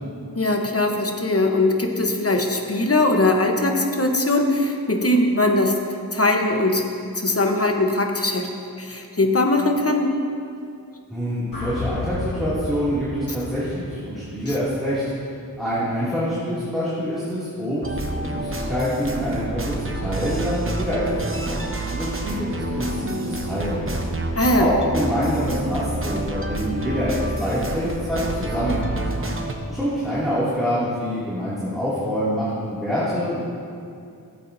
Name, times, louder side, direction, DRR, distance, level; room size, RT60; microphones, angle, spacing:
voice 1, 0.3-5.7 6.1-6.8 7.1-8.5 8.8-10.1 24.4-24.7, left 2 dB, 35° left, 3 dB, 1.0 m, -20 dB
voice 2, 11.1-15.0 15.6-23.9 24.6-29.0 29.7-33.4, equal, ahead, -11 dB, 2.6 m, -26 dB
sound 1, 11.5-15.7, left 2 dB, 60° left, 1.8 m, -34 dB
sound 2, 17.8-29.5, right 2 dB, 35° right, 0.9 m, -28 dB
15.5 x 8.2 x 2.7 m, 2.4 s
wide cardioid pair, 50°, 39 cm